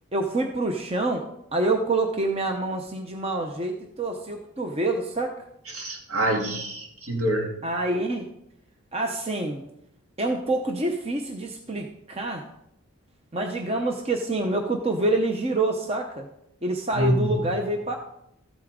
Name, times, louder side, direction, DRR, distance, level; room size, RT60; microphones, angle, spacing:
voice 1, 0.1-1.3 1.5-5.4 7.6-8.3 8.9-9.6 10.2-12.5 13.3-16.3 16.6-18.0, right 2 dB, 25° right, 3 dB, 0.7 m, -26 dB
voice 2, 5.7-7.5 17.0-17.4, right 1 dB, 70° right, 0 dB, 2.2 m, -26 dB
13.5 x 8.2 x 3.7 m, 0.79 s
head